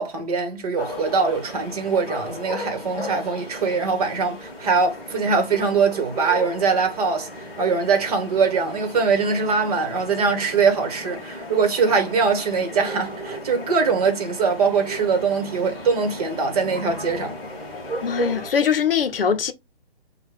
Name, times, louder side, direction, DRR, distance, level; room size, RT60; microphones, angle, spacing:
voice 1, 0.0-17.3, right 5 dB, 40° right, 1.2 m, -22 dB
sound 1, 0.8-18.5, equal, 15° left, 0.9 m, -35 dB
voice 2, 18.0-19.5, left 7 dB, 65° left, 0.7 m, -22 dB
6.2 x 2.3 x 3.3 m
hypercardioid pair, 150°, 31 cm